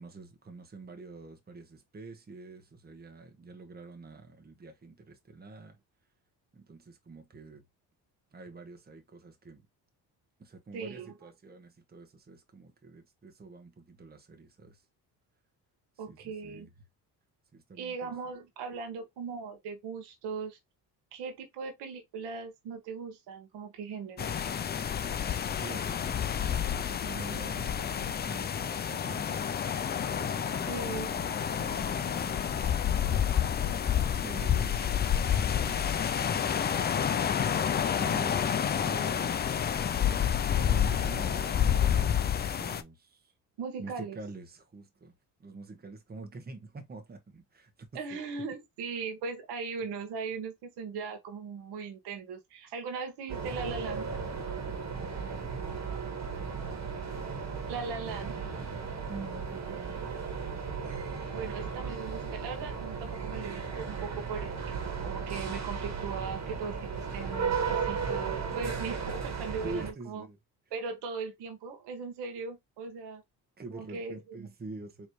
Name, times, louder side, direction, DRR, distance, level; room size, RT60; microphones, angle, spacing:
voice 1, 0.0-5.8 6.5-7.6 8.3-9.7 10.4-14.8 16.0-16.7 17.5-18.1 25.4-29.7 30.1-33.8 34.2-37.4 38.0-39.7 40.6-43.3 43.8-45.1 45.4-48.2 54.9-55.5 56.4-56.8 59.1-60.0 69.6-70.4 73.6-75.1, right 3 dB, 25° right, 1.2 m, -46 dB
voice 2, 10.7-11.1 16.0-16.7 17.8-20.6 21.1-24.3 24.8-24.9 30.7-31.1 43.6-44.2 47.9-54.1 57.7-58.3 61.3-70.3 70.7-73.2 73.7-74.5, right 5 dB, 80° right, 1.4 m, -39 dB
sound 1, 24.2-42.8, left 8 dB, 25° left, 0.4 m, -29 dB
sound 2, 53.3-69.9, right 5 dB, 40° right, 1.7 m, -35 dB
4.3 x 3.1 x 3.1 m
cardioid pair, 90°, 40 cm